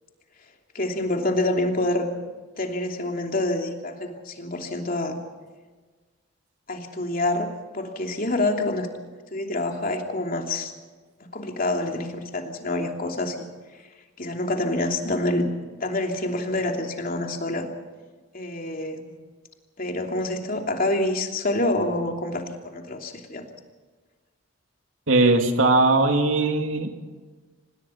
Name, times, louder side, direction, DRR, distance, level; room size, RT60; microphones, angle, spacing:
voice 1, 0.7-2.1 2.6-5.2 6.7-8.9 9.3-10.7 11.2-13.5 14.2-15.5 15.8-17.7 18.3-19.2 19.8-23.5, left 2 dB, 45° left, 3 dB, 3.0 m, -27 dB
voice 2, 25.1-26.9, right 2 dB, 85° right, 4 dB, 2.7 m, -19 dB
26.5 x 19.5 x 5.8 m, 1.4 s
head